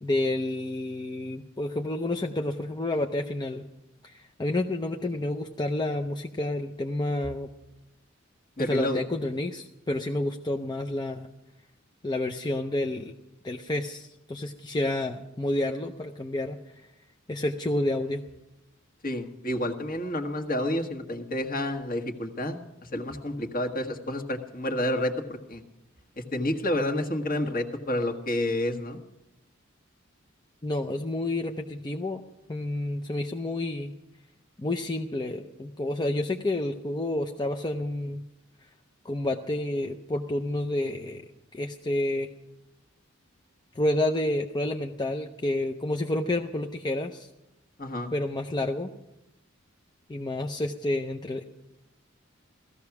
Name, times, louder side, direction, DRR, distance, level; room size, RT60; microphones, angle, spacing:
voice 1, 0.0-3.6 4.0-7.5 8.6-11.3 12.0-13.1 13.4-16.9 17.3-18.2 30.6-32.2 32.5-33.9 34.6-38.2 39.0-41.2 41.5-42.3 43.7-47.3 48.1-48.9 50.1-51.4, left 1 dB, 20° left, 4 dB, 0.6 m, -29 dB
voice 2, 8.6-9.0 19.0-22.6 22.9-25.6 26.3-29.0 47.8-48.1, left 1 dB, 45° left, 5 dB, 1.5 m, -29 dB
16.5 x 14.5 x 5.9 m, 0.91 s
head